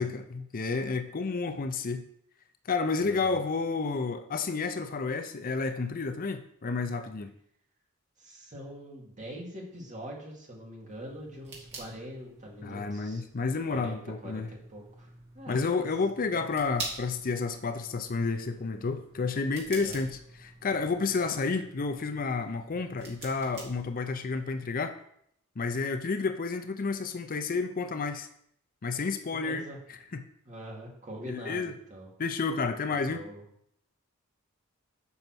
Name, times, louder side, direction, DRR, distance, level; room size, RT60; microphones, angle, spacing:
voice 1, 0.0-2.1 2.6-7.3 12.6-14.5 15.5-25.0 25.6-28.3 28.8-30.2 31.2-31.7 32.2-33.3, left 4 dB, 40° left, 8 dB, 0.5 m, -31 dB
voice 2, 3.0-3.4 8.2-13.2 13.7-15.1 15.4-15.9 19.8-20.0 29.3-29.8 30.5-32.1 32.9-33.4, equal, 35° right, -2 dB, 2.2 m, -43 dB
sound 1, 10.9-24.4, right 3 dB, 50° right, 2.5 m, -47 dB
7.0 x 5.4 x 6.1 m, 0.70 s
head